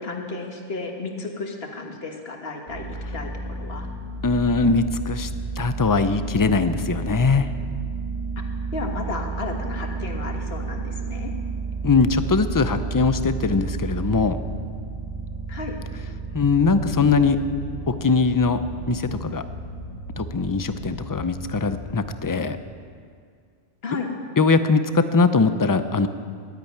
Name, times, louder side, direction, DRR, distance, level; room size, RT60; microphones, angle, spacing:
voice 1, 0.0-3.9 8.7-11.3 15.5-15.8 23.8-24.1, left 3 dB, 60° left, 2 dB, 1.7 m, -33 dB
sound 1, 2.7-22.3, right 3 dB, 50° right, 3.4 m, -32 dB
voice 2, 4.2-5.3 5.6-7.5 11.8-14.4 16.3-17.4 17.9-18.6 18.9-19.4 20.2-22.6 24.4-26.1, left 4 dB, 35° left, 11 dB, 0.3 m, -21 dB
12.0 x 10.0 x 9.5 m, 2.2 s
omnidirectional pair, 1.2 m